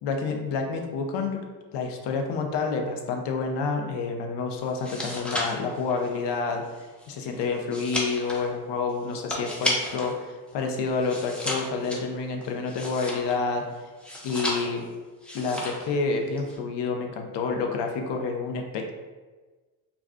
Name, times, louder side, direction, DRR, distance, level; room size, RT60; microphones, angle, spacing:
voice 1, 0.0-1.4 1.7-6.6 7.1-13.6 14.2-14.8 15.3-18.9, left 4 dB, 65° left, 3 dB, 0.6 m, -28 dB
sound 1, 4.7-10.2 10.5-13.5 14.0-14.9 15.2-15.9 16.2-16.6, equal, 5° left, 0.4 m, -33 dB
2.4 x 2.2 x 3.5 m, 1.3 s
cardioid pair, 95°, 46 cm